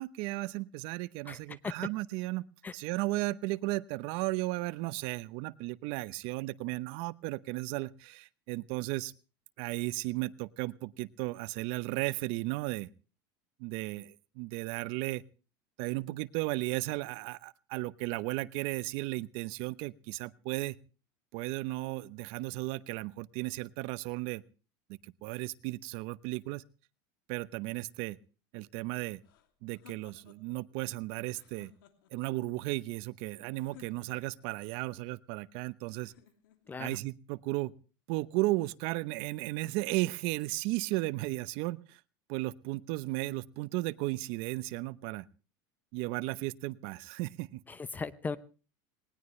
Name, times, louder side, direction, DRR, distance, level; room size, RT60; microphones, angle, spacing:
voice 1, 0.0-2.4 2.7-9.1 9.6-12.9 13.6-15.2 15.8-20.8 21.3-24.4 25.0-26.6 27.3-28.2 28.5-29.2 29.6-31.7 32.1-36.1 36.8-37.7 38.1-42.0 42.3-45.2 45.9-47.6, right 20 dB, 60° right, 17 dB, 0.9 m, -35 dB
sound 1, 29.2-30.6 31.2-32.3 33.6-34.5 36.0-36.8, left 11 dB, 85° left, 2.8 m, -60 dB
voice 2, 47.7-48.4, left 4 dB, 15° left, 17 dB, 0.7 m, -37 dB
19.5 x 19.5 x 3.2 m, 0.36 s
supercardioid pair, 145°, 11 cm